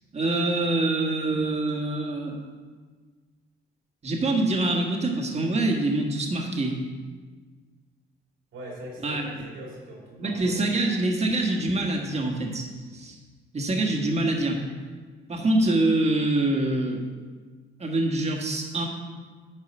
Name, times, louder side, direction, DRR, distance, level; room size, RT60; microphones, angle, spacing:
voice 1, 0.1-2.4 4.0-6.8 9.0-9.3 10.2-12.7 12.9-13.2 13.5-14.6 15.3-17.0 17.8-18.9, right 2 dB, 35° right, 1 dB, 1.5 m, -25 dB
voice 2, 8.5-11.0, right 1 dB, 85° right, -2 dB, 2.8 m, -41 dB
10.0 x 4.8 x 5.3 m, 1.5 s
cardioid pair, 90°, 20 cm